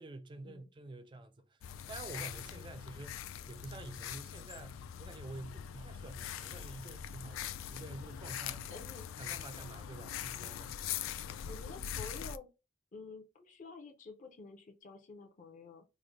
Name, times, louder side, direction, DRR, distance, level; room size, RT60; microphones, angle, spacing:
voice 1, 0.0-1.6 1.9-8.7 9.2-10.8, right 2 dB, 25° right, 0.3 m, -48 dB
sound 1, 1.6-12.4, left 9 dB, 85° left, 0.3 m, -42 dB
voice 2, 8.6-9.1 10.6-10.8 11.5-12.5 12.9-15.8, left 3 dB, 40° left, 0.6 m, -50 dB
3.2 x 2.1 x 3.7 m
head